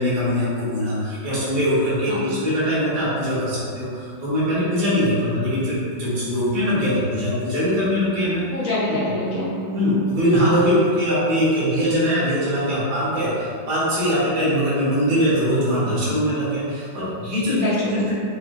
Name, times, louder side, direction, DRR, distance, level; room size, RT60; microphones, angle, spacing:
voice 1, 0.0-8.5 9.7-18.0, equal, 65° right, -9 dB, 2.0 m, -22 dB
voice 2, 8.5-9.5 17.6-18.1, left 1 dB, 80° left, -8 dB, 0.7 m, -25 dB
6.1 x 2.3 x 2.6 m, 2.3 s
omnidirectional pair, 2.3 m